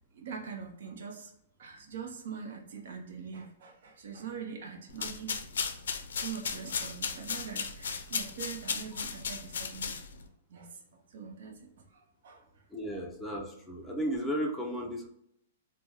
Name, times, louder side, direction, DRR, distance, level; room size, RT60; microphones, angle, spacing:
voice 1, 0.1-1.3 1.6-5.4 5.7-5.8 6.2-10.0 10.5-12.6, right 6 dB, 70° right, 1 dB, 0.7 m, -43 dB
sound 1, 4.9-10.3, left 6 dB, 85° left, 0.4 m, -36 dB
voice 2, 12.7-15.1, equal, ahead, -3 dB, 0.5 m, -34 dB
3.4 x 2.1 x 2.9 m, 0.73 s
hypercardioid pair, 150°, 0 cm